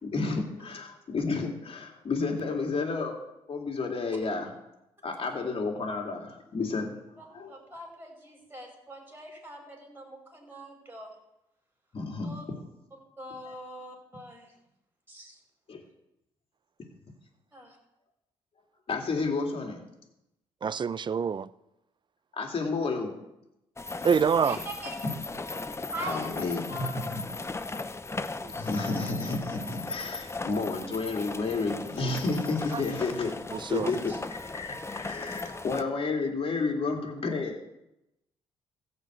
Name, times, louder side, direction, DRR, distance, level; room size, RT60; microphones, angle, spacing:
voice 1, 0.0-3.2 3.5-4.5 5.0-7.0 7.3-7.5 11.9-12.3 15.7-15.8 18.9-19.8 22.3-23.1 26.0-26.6 26.9-27.2 28.5-33.3 33.7-34.1 34.5-37.6, left 3 dB, 50° left, 3.0 m, -31 dB
voice 2, 7.2-11.2 12.2-12.5 12.9-14.5 15.1-15.4 17.5-17.8 24.4-24.9 25.9-27.2 34.1-34.2, right 1 dB, 15° right, 5.5 m, -43 dB
voice 3, 20.6-21.5 24.0-24.6 28.4-28.5 33.5-33.9, right 6 dB, 40° right, 0.5 m, -26 dB
sound 1, 23.8-35.8, left 3 dB, 20° left, 0.8 m, -37 dB
15.0 x 5.2 x 8.2 m
supercardioid pair, 60°, 13 cm